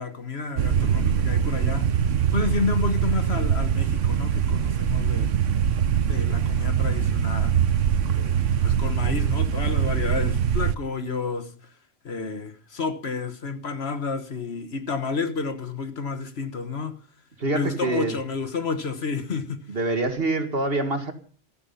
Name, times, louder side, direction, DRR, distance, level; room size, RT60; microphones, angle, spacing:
voice 1, 0.0-1.9 2.3-5.3 6.1-7.6 8.1-11.5 12.0-17.0 17.5-19.7, left 4 dB, 55° left, 1.5 m, -30 dB
sound 1, 0.6-10.7, right 8 dB, 75° right, 1.3 m, -23 dB
voice 2, 17.4-18.2 19.7-21.1, right 2 dB, 50° right, 2.3 m, -25 dB
15.0 x 13.5 x 5.6 m
omnidirectional pair, 1.3 m